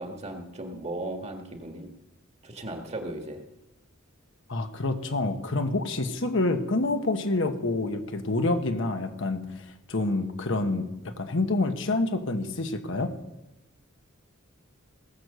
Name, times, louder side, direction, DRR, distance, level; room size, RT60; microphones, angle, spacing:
voice 1, 0.0-1.9 2.4-3.4, right 1 dB, 35° right, 4 dB, 1.8 m, -36 dB
voice 2, 4.5-13.2, left 2 dB, 65° left, 7 dB, 1.3 m, -27 dB
18.5 x 7.9 x 6.8 m, 0.93 s
head